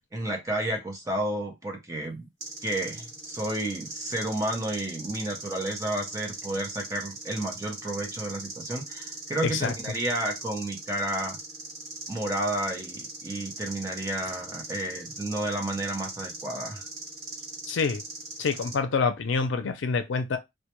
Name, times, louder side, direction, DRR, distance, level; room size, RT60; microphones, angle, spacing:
voice 1, 0.1-2.3 2.6-11.4 12.1-16.9, right 1 dB, 15° right, 0.5 m, -31 dB
sound 1, 2.4-18.8, right 2 dB, 45° right, 1.0 m, -40 dB
voice 2, 9.4-9.7 17.7-18.0 18.4-20.4, left 5 dB, 80° left, 0.4 m, -26 dB
2.1 x 2.1 x 2.9 m
head